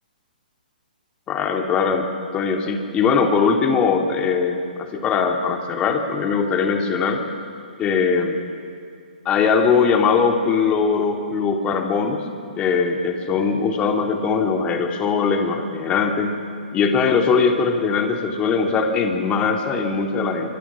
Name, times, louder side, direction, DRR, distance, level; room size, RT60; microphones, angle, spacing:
voice 1, 1.3-2.0 2.3-7.2 7.8-8.4 9.2-12.3 12.6-16.4 16.7-20.6, left 5 dB, 20° left, 4 dB, 2.4 m, -20 dB
26.5 x 24.5 x 6.1 m, 2.4 s
figure-of-eight pair, 125°, 5 cm